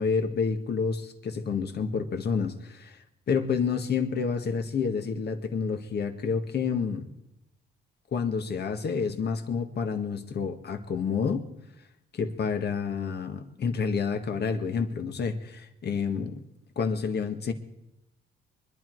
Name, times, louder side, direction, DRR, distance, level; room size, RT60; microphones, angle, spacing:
voice 1, 0.0-3.0 3.3-7.1 8.1-11.5 12.1-16.4 16.7-17.5, left 5 dB, 55° left, 6 dB, 1.8 m, -29 dB
24.0 x 11.0 x 4.7 m, 0.87 s
cardioid pair, 90°, 20 cm